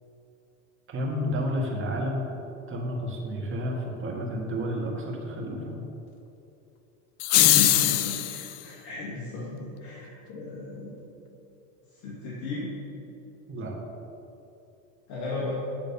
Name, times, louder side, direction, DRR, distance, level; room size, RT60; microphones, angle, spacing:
voice 1, 0.9-2.3 2.7-5.8 13.5-13.7, equal, 30° right, -1 dB, 1.7 m, -31 dB
sound 1, 7.2-8.5, left 14 dB, 40° left, 0.4 m, -21 dB
voice 2, 7.4-10.9 12.0-12.7 15.1-15.6, left 2 dB, 70° left, -6 dB, 2.0 m, -35 dB
8.6 x 3.9 x 6.8 m, 2.8 s
supercardioid pair, 110°, 41 cm